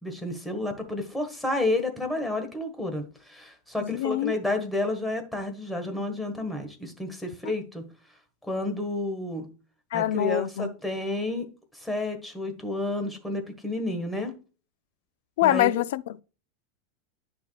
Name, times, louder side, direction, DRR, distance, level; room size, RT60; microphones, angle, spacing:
voice 1, 0.0-7.8 8.4-9.4 9.9-11.5 11.7-14.3 15.4-15.8, left 2 dB, 5° left, 1.5 m, -30 dB
voice 2, 3.8-4.3 9.9-10.7 15.4-16.2, left 13 dB, 70° left, 0.4 m, -25 dB
10.5 x 5.9 x 2.3 m
supercardioid pair, 165°, 0 cm